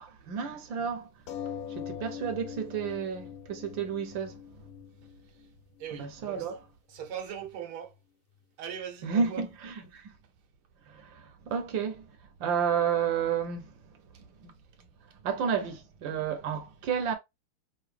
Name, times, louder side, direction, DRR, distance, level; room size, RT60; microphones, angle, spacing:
voice 1, 0.0-1.1 1.7-4.4 5.9-6.6 9.0-10.0 10.9-12.1 12.4-13.7 14.4-14.5 15.2-17.1, right 7 dB, 70° right, 1.5 m, -31 dB
sound 1, 1.3-6.3 7.0-7.1 7.4-7.5, left 9 dB, 65° left, 0.9 m, -42 dB
voice 2, 5.8-6.5 6.9-8.0 8.6-9.4, right 8 dB, 85° right, 1.9 m, -40 dB
5.8 x 2.7 x 3.3 m
omnidirectional pair, 2.3 m